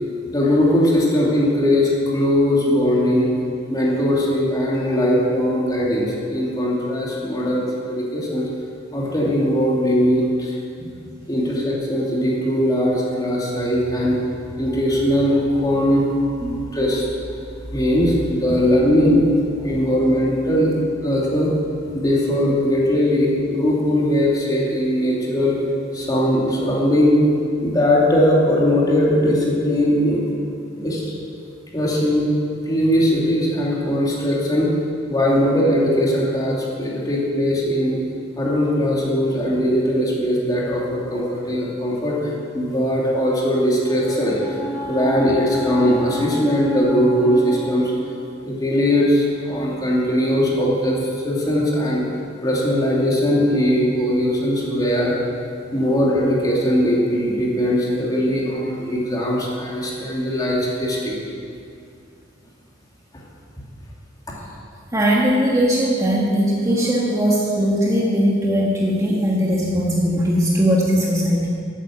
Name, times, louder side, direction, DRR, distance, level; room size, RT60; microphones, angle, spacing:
voice 1, 0.3-3.3 3.7-8.5 8.9-10.6 11.3-14.2 14.5-17.4 17.7-19.2 19.6-20.7 21.0-21.5 21.9-25.6 25.9-27.2 27.6-30.3 30.7-31.1 31.7-32.3 32.7-34.7 35.1-38.0 38.4-48.0 48.4-52.0 52.4-55.1 55.7-61.2, equal, 20° left, -4 dB, 2.6 m, -20 dB
voice 2, 64.9-71.5, equal, 15° right, -4 dB, 1.4 m, -19 dB
12.5 x 9.0 x 7.5 m, 2.4 s
head